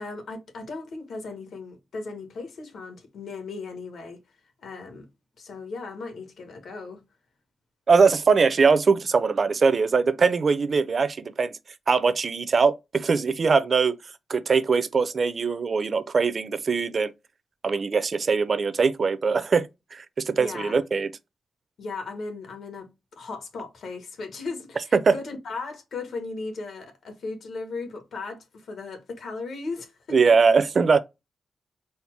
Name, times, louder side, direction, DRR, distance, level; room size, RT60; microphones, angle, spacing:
voice 1, 0.0-4.2 4.6-5.1 5.4-7.0 20.4-20.8 21.8-30.3, left 3 dB, 70° left, 1.2 m, -37 dB
voice 2, 7.9-11.5 11.9-14.0 14.3-17.1 17.6-21.1 24.9-25.1 30.1-31.0, right 5 dB, 40° right, 0.4 m, -21 dB
4.2 x 2.0 x 4.5 m
wide cardioid pair, 160°, 0 cm